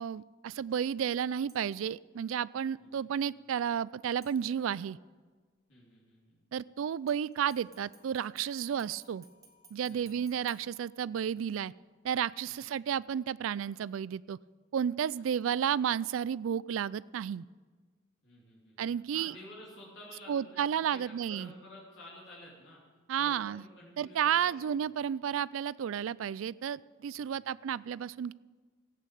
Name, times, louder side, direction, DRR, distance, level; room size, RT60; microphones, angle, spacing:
voice 1, 0.0-5.0 6.5-9.2 9.7-11.7 12.0-14.4 14.7-17.4 18.8-19.3 20.3-21.5 23.1-23.6 24.0-28.3, right 8 dB, 75° right, 20 dB, 0.3 m, -32 dB
sound 1, 1.5-1.9 4.2-4.9 7.1-11.5 11.9-12.0, right 2 dB, 15° right, 2.0 m, -61 dB
voice 2, 2.8-3.1 5.7-6.4 9.9-10.4 12.4-12.6 15.4-15.6 18.2-22.8 23.2-24.7 27.2-27.5, left 1 dB, 60° left, -5 dB, 3.1 m, -52 dB
14.5 x 8.4 x 8.4 m, 1.5 s
head